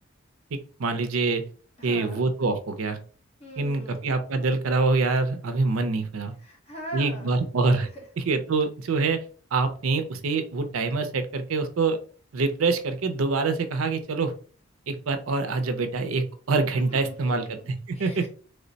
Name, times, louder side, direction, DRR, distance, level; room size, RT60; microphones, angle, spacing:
voice 1, 0.5-1.4 1.8-3.0 3.6-6.3 6.9-7.9 8.2-9.2 9.5-12.0 12.3-14.3 14.9-18.2, right 3 dB, 85° right, 8 dB, 0.5 m, -25 dB
voice 2, 1.8-2.2 3.4-4.1 6.4-7.3 7.9-8.0 16.7-17.5 17.9-18.3, right 1 dB, 30° left, -1 dB, 1.0 m, -40 dB
3.2 x 2.1 x 3.9 m, 0.41 s
head